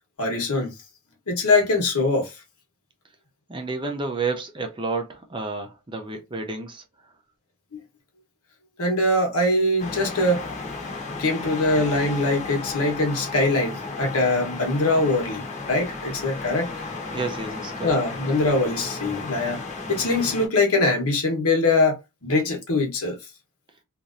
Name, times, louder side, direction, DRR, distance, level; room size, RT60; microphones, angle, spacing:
voice 1, 0.2-0.7 1.3-2.4 8.8-10.5 11.2-16.7 17.8-19.6 19.9-23.2, left 2 dB, 75° left, 1.1 m, -22 dB
voice 2, 3.5-6.8 17.1-18.0, right 3 dB, 20° right, 0.5 m, -30 dB
sound 1, 9.8-20.5, left 3 dB, 30° left, 0.8 m, -34 dB
3.0 x 2.6 x 2.5 m
head